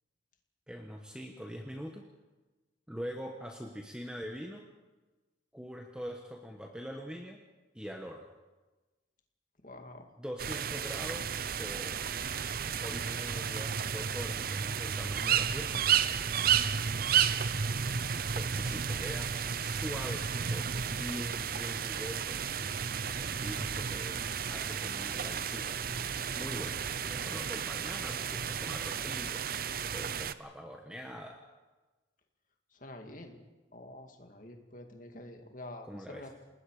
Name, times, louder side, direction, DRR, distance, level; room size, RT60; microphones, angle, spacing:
voice 1, 0.7-2.0 2.9-4.6 5.5-7.4 7.7-8.3 10.2-11.3 11.6-12.0 12.8-15.9 18.3-22.4 23.2-24.2 24.5-25.8 26.3-29.4 29.9-31.4 35.9-36.3, equal, 5° right, 2 dB, 1.3 m, -43 dB
voice 2, 9.6-10.1 32.7-33.5 33.7-36.3, left 1 dB, 45° left, 4 dB, 2.4 m, -47 dB
sound 1, 10.4-30.3, right 7 dB, 50° right, 0.7 m, -32 dB
29.0 x 19.5 x 5.0 m, 1.2 s
head